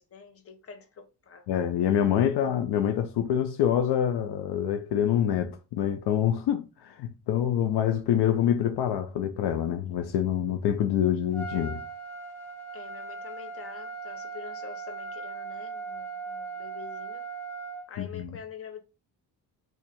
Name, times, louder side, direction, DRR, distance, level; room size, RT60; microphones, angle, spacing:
voice 1, 0.0-1.5 2.3-2.4 12.7-17.2 17.9-18.8, left 6 dB, 35° left, 0.9 m, -46 dB
voice 2, 1.5-11.8 18.0-18.3, left 10 dB, 70° left, 0.5 m, -26 dB
Trumpet, 11.3-17.9, right 4 dB, 5° left, 0.8 m, -38 dB
2.6 x 2.5 x 4.1 m
cardioid pair, 135°, 41 cm